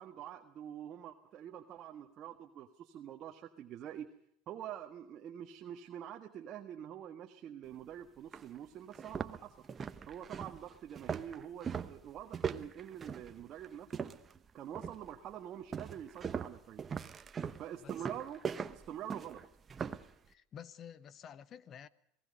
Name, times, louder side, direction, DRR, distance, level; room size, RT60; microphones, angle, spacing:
voice 1, 0.0-4.1 4.5-9.5 10.1-14.1 14.5-16.8 17.6-19.4, right 10 dB, 40° right, 1.6 m, -46 dB
sound 1, 7.7-7.8 8.3-8.4 8.9-14.4 14.7-15.1 15.7-20.1, right 6 dB, 25° right, 1.0 m, -40 dB
voice 2, 20.3-21.9, left 8 dB, 40° left, 1.0 m, -50 dB
27.0 x 18.5 x 5.4 m
supercardioid pair, 110°, 0 cm